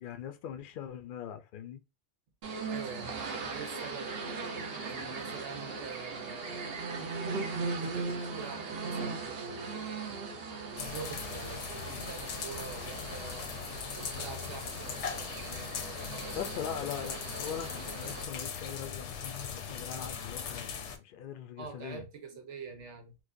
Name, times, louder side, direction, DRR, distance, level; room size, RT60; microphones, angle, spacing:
voice 1, 0.0-1.8 16.3-20.7 21.0-22.0, left 9 dB, 60° left, 0.6 m, -41 dB
sound 1, 2.4-18.2, right 4 dB, 60° right, 1.0 m, -39 dB
voice 2, 2.7-4.1 4.8-6.7 7.5-9.9 10.7-13.5 13.9-16.4 21.6-23.2, right 5 dB, 90° right, 1.1 m, -45 dB
sound 2, 10.8-21.0, left 6 dB, 85° left, 1.0 m, -39 dB
4.6 x 2.1 x 2.5 m
omnidirectional pair, 1.2 m